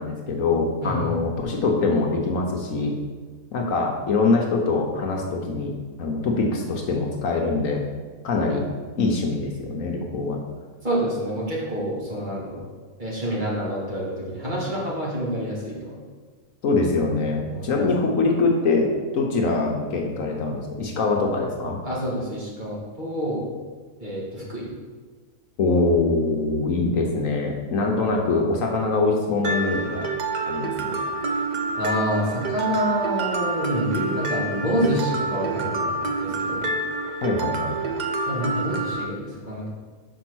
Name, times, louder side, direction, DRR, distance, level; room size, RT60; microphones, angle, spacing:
voice 1, 0.0-2.9 3.5-7.8 8.2-8.7 9.0-10.4 16.6-21.8 25.6-30.1 30.5-31.0 37.2-37.8, left 3 dB, 65° left, 1 dB, 1.2 m, -23 dB
voice 2, 0.8-1.1 10.8-12.6 13.0-16.0 17.5-17.7 21.8-23.4 24.0-24.7 31.8-36.7 38.3-39.7, equal, 30° right, -5 dB, 1.9 m, -27 dB
Mallet percussion, 29.4-39.0, right 3 dB, 55° right, 0.5 m, -27 dB
5.4 x 5.1 x 6.1 m, 1.5 s
omnidirectional pair, 1.6 m